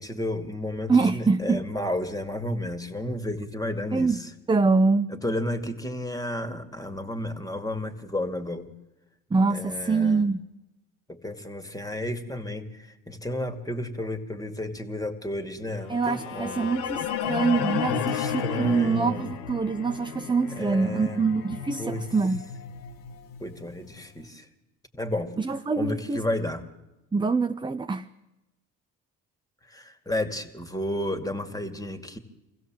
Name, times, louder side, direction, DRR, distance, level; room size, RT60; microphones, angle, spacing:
voice 1, 0.0-4.3 5.1-8.7 9.5-10.3 11.1-16.7 17.8-19.3 20.5-21.3 21.8-22.0 23.4-24.5 24.9-25.3 25.8-26.6 29.7-32.2, left 1 dB, 10° left, 2.4 m, -32 dB
voice 2, 0.9-1.6 3.9-4.2 4.5-5.1 9.3-10.4 15.9-22.4 25.4-26.2 27.1-28.1, right 4 dB, 10° right, 0.6 m, -24 dB
sound 1, 15.9-24.0, left 8 dB, 90° left, 1.5 m, -33 dB
25.0 x 16.0 x 7.7 m
supercardioid pair, 75°, 38 cm